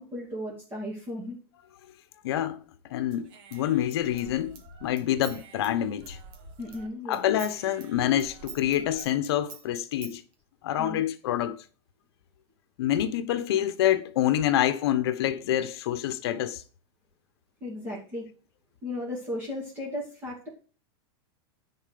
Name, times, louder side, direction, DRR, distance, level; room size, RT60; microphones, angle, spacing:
voice 1, 0.0-1.4 6.6-7.2 10.8-11.0 17.6-18.3 18.8-20.5, left 1 dB, 15° right, 2.8 m, -35 dB
voice 2, 2.2-2.6 2.9-6.2 7.1-10.2 10.6-11.6 12.8-16.6, left 11 dB, 70° left, 0.9 m, -27 dB
Human voice / Scissors, 3.1-6.9 7.1-10.2, right 6 dB, 35° right, 1.6 m, -47 dB
10.5 x 4.3 x 6.8 m
supercardioid pair, 170°, 14 cm